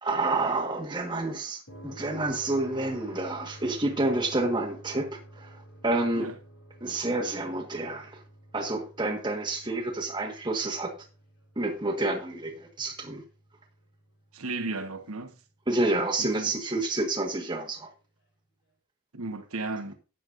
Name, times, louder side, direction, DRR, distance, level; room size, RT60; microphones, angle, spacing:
voice 1, 0.0-6.3 6.8-8.2 8.5-10.9 11.5-13.2 15.7-17.9, right 2 dB, 20° right, 1.5 m, -29 dB
sound 1, 1.7-15.5 17.8-17.9, equal, 60° left, 3.0 m, -50 dB
voice 2, 14.3-15.3 16.4-16.5 19.1-19.9, right 3 dB, 75° right, 1.3 m, -34 dB
13.0 x 9.4 x 2.6 m
head